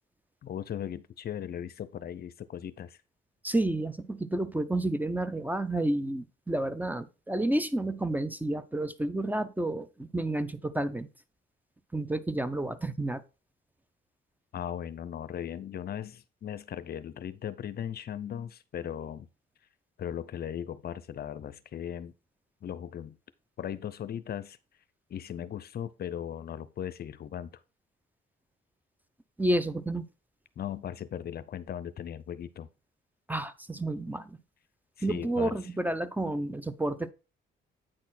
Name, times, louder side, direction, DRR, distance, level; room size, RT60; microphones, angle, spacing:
voice 1, 0.4-3.0 14.5-19.3 20.0-22.1 22.6-23.2 23.6-24.6 25.1-27.6 30.6-32.7 35.0-35.5, left 9 dB, 50° left, 0.6 m, -38 dB
voice 2, 3.4-11.1 11.9-13.2 29.4-30.0 33.3-34.4 35.0-37.1, right 1 dB, 10° right, 0.6 m, -30 dB
8.7 x 4.3 x 4.2 m
cardioid pair, 90°, 20 cm